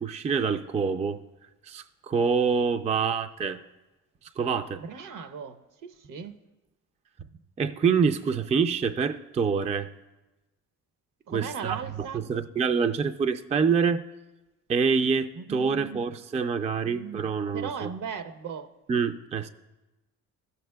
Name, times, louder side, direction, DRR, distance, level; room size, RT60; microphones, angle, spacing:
voice 1, 0.0-1.2 1.7-3.6 4.4-4.8 7.6-9.9 11.3-14.0 14.7-17.9 18.9-19.5, right 5 dB, 20° right, 9 dB, 0.4 m, -26 dB
voice 2, 4.8-6.3 11.3-12.2 15.3-16.0 16.8-18.7, right 6 dB, 60° right, 10 dB, 0.7 m, -38 dB
15.5 x 6.7 x 2.3 m, 1.1 s
supercardioid pair, 70°, 36 cm